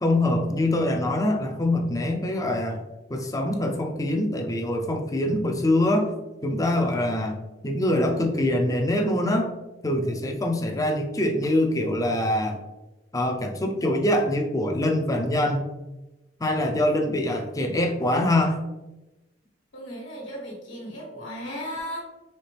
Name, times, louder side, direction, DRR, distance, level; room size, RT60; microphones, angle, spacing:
voice 1, 0.0-2.8 3.1-6.1 6.4-7.4 7.6-9.5 9.8-12.6 13.1-15.6 16.4-18.6, left 1 dB, 20° left, 3 dB, 0.6 m, -24 dB
voice 2, 19.7-22.0, equal, 75° left, -5 dB, 1.4 m, -35 dB
4.3 x 3.4 x 3.3 m, 1.0 s
head